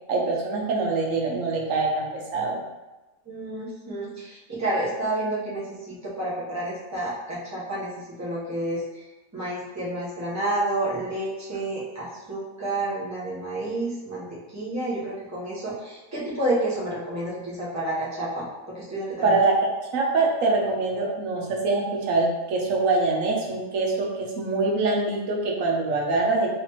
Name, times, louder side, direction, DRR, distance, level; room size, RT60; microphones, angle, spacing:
voice 1, 0.1-2.6 19.2-19.6 19.9-26.5, right 3 dB, 80° right, -1 dB, 1.1 m, -24 dB
voice 2, 3.2-7.9 8.2-8.8 9.3-19.4, right 1 dB, 15° right, -8 dB, 1.0 m, -30 dB
4.1 x 3.2 x 3.0 m, 1.1 s
omnidirectional pair, 1.3 m